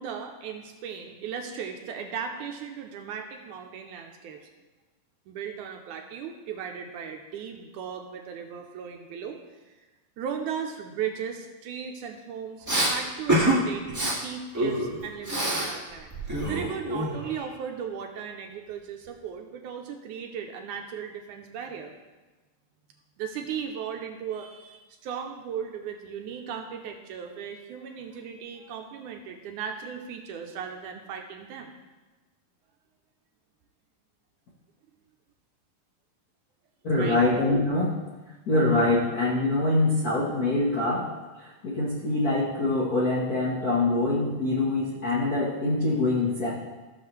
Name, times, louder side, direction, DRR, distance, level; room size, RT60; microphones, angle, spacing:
voice 1, 0.0-4.5 5.3-9.4 10.2-13.9 14.2-16.2 16.5-21.9 23.2-31.7 37.0-37.2, right 7 dB, 75° right, 3 dB, 2.1 m, -36 dB
Respiratory sounds, 12.7-12.9 13.3-13.6 13.9-14.1 14.5-15.7 16.0-17.4, right 1 dB, 15° right, 0.6 m, -26 dB
voice 2, 36.8-37.9 38.5-41.1 41.4-46.5, left 2 dB, 80° left, -5 dB, 0.8 m, -24 dB
15.0 x 6.5 x 3.2 m, 1.2 s
omnidirectional pair, 3.9 m